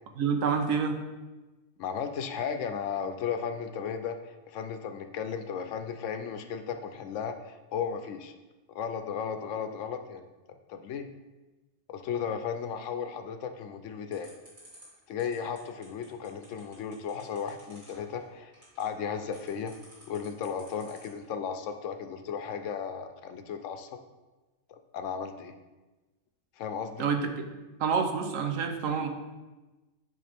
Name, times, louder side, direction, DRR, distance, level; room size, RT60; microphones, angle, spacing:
voice 1, 0.2-1.0 27.0-27.5 27.8-29.1, right 6 dB, 85° right, 5 dB, 1.1 m, -28 dB
voice 2, 1.8-8.3 8.7-10.2 10.7-11.1 11.9-14.3 15.1-18.5 18.8-19.7 20.1-23.9 24.7-25.5 26.6-27.1, left 7 dB, 75° left, 8 dB, 0.9 m, -35 dB
sound 1, 14.1-21.3, equal, 35° right, 2.5 m, -54 dB
10.5 x 3.5 x 3.4 m, 1.1 s
omnidirectional pair, 1.4 m